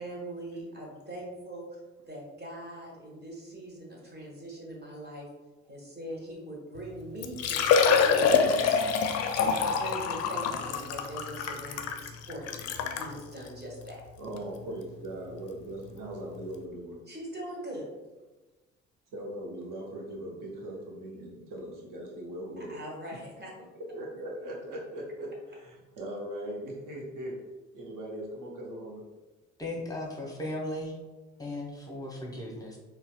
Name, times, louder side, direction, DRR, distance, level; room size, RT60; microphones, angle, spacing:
voice 1, 0.0-1.8 2.1-5.3 5.6-8.8 9.3-14.0 17.1-17.9 22.6-23.5, right 1 dB, 25° right, -2 dB, 1.2 m, -41 dB
Liquid, 6.8-6.9 7.2-13.1 13.8-13.9 14.4-14.5 16.1-16.2 16.4-16.5, left 6 dB, 45° left, 0.4 m, -26 dB
voice 2, 14.2-17.0 19.1-22.8 23.9-27.3 27.7-29.0, right 1 dB, 60° right, -1 dB, 1.0 m, -40 dB
voice 3, 29.6-30.9 31.4-32.8, left 1 dB, 10° left, -1 dB, 0.8 m, -36 dB
4.0 x 2.2 x 2.2 m, 1.2 s
hypercardioid pair, 50°, 37 cm